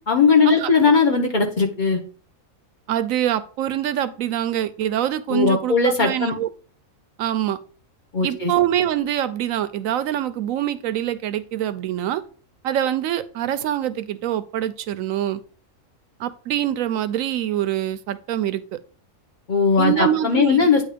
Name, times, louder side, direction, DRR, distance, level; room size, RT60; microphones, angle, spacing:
voice 1, 0.1-2.0 5.3-6.3 8.1-8.5 19.5-20.8, left 5 dB, 40° left, 2 dB, 1.0 m, -18 dB
voice 2, 2.9-6.5 7.2-7.6 8.2-12.2 12.6-15.4 16.2-18.8 19.8-20.7, right 11 dB, 75° right, 13 dB, 0.9 m, -24 dB
8.9 x 3.0 x 5.0 m, 0.40 s
omnidirectional pair, 1.4 m